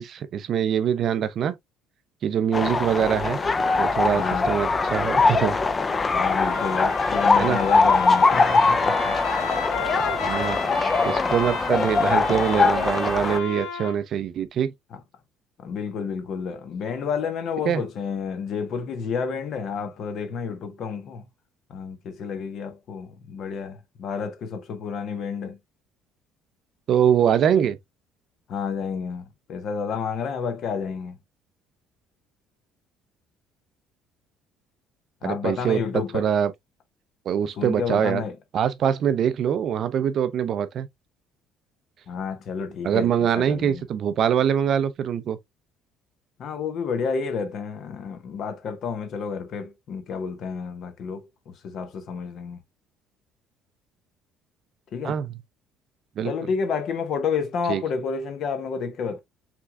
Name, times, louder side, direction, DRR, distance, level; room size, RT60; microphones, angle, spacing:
voice 1, 0.0-1.6 2.2-3.4 3.8-5.6 7.4-7.6 10.2-10.6 11.0-14.7 17.7-17.8 26.9-27.8 35.2-35.8 36.1-36.5 37.3-38.2 38.5-40.9 42.8-45.4 55.0-55.3 56.2-56.3 57.7-57.8, right 8 dB, 40° right, 0.5 m, -23 dB
sound 1, 2.5-13.4, left 4 dB, 20° left, 0.3 m, -22 dB
voice 2, 4.1-4.5 6.1-9.2 14.9-15.0 15.6-21.3 21.7-25.6 28.5-31.2 35.2-36.3 37.5-38.4 42.1-43.8 46.4-52.6 54.9-55.2 56.2-59.2, left 6 dB, 45° left, 1.0 m, -30 dB
Trumpet, 6.4-14.0, left 4 dB, 85° left, 1.7 m, -32 dB
5.9 x 3.5 x 2.2 m
cardioid pair, 170°, 0 cm